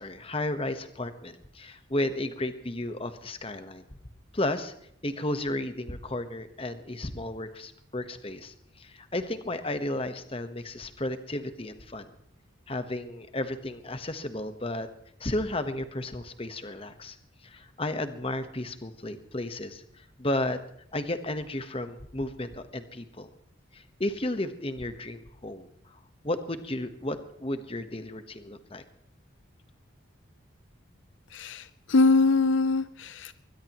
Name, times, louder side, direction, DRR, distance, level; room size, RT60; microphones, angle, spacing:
voice 1, 0.0-4.0 4.3-4.7 5.0-12.1 12.7-14.9 15.2-17.2 17.4-20.6 20.9-23.3 23.7-28.8, left 1 dB, 30° left, 9 dB, 1.2 m, -33 dB
voice 2, 31.3-33.3, left 3 dB, 70° left, 13 dB, 0.6 m, -23 dB
22.0 x 20.0 x 3.1 m, 0.72 s
head